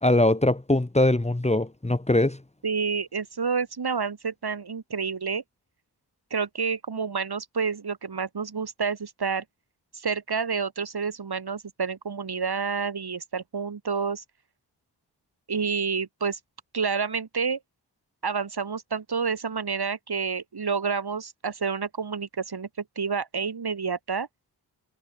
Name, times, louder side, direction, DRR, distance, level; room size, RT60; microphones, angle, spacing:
voice 1, 0.0-2.4, left 1 dB, 15° left, 2.3 m, -22 dB
voice 2, 2.6-5.4 6.3-9.4 9.9-14.2 15.5-16.4 16.7-17.6 18.2-22.7 23.0-24.3, right 5 dB, 60° right, 7.9 m, -29 dB
cardioid pair, 75°, 43 cm